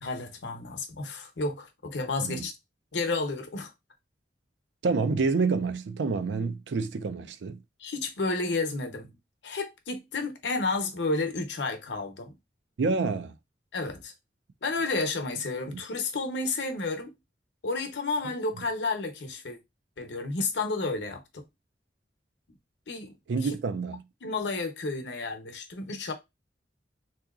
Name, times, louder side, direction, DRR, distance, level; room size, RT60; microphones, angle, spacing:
voice 1, 0.0-2.5 2.9-3.7 7.8-9.1 9.4-12.3 13.7-14.1 14.6-17.1 17.6-19.6 20.0-21.4 22.9-23.1 24.2-26.1, left 3 dB, 75° left, 0.8 m, -31 dB
voice 2, 4.8-7.6 12.8-13.4 15.7-15.8 23.3-24.0, right 4 dB, 80° right, 0.4 m, -28 dB
3.7 x 2.8 x 2.4 m
head